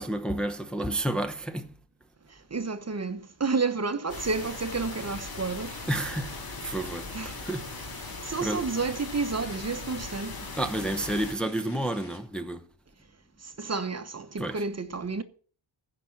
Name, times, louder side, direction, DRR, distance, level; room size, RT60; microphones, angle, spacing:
voice 1, 0.0-1.7 5.8-7.1 7.4-7.7 8.4-8.7 10.6-12.7 14.4-14.7, right 1 dB, ahead, 0.8 m, -30 dB
voice 2, 2.5-5.8 7.1-7.4 8.2-10.4 13.4-15.2, right 4 dB, 35° right, 1.0 m, -30 dB
sound 1, 4.1-11.3, left 3 dB, 50° left, 2.6 m, -39 dB
sound 2, 4.1-12.2, left 2 dB, 30° left, 5.3 m, -52 dB
15.5 x 5.9 x 7.8 m
wide cardioid pair, 130°, 46 cm